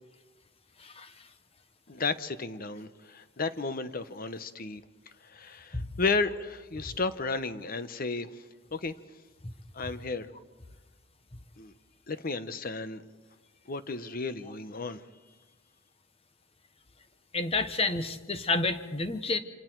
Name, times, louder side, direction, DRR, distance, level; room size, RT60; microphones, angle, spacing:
voice 1, 0.8-1.1 9.8-9.9 17.3-19.4, left 3 dB, 30° left, 9 dB, 1.2 m, -30 dB
voice 2, 1.9-4.8 5.2-8.3 8.7-8.9 9.7-10.3 11.6-11.7 12.1-13.0 13.7-15.0, left 4 dB, 45° left, 12 dB, 0.9 m, -33 dB
28.0 x 26.5 x 4.6 m, 1.2 s
head